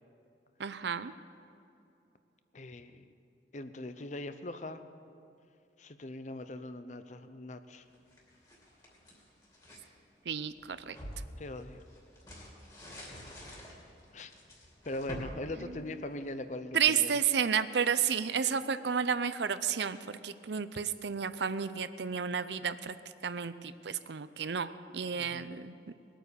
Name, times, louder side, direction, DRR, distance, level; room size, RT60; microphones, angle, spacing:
voice 1, 0.6-1.1 10.3-11.0 15.6-15.7 16.7-22.9 23.2-25.8, right 7 dB, 75° right, 13 dB, 0.6 m, -31 dB
voice 2, 2.5-3.1 3.5-4.8 5.8-7.8 11.4-11.8 14.1-14.3 14.9-17.1 25.1-25.5, left 2 dB, 40° left, 10 dB, 0.7 m, -41 dB
sound 1, 7.9-9.9 10.4-16.5, equal, 20° left, 2.9 m, -47 dB
20.5 x 9.0 x 6.9 m, 2.6 s
head